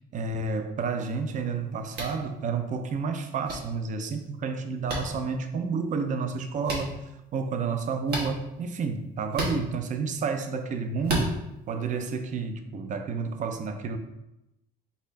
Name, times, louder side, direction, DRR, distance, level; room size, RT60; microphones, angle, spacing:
voice 1, 0.1-7.0 7.3-11.4 11.7-14.0, right 5 dB, 50° right, 7 dB, 0.6 m, -30 dB
sound 1, 1.9-2.2 3.5-3.6 4.9-5.0 6.6-6.8 8.1-8.3 9.3-9.6 11.0-11.3, right 1 dB, 70° right, 1.2 m, -29 dB
4.1 x 2.6 x 4.0 m, 0.90 s
cardioid pair, 110°, 17 cm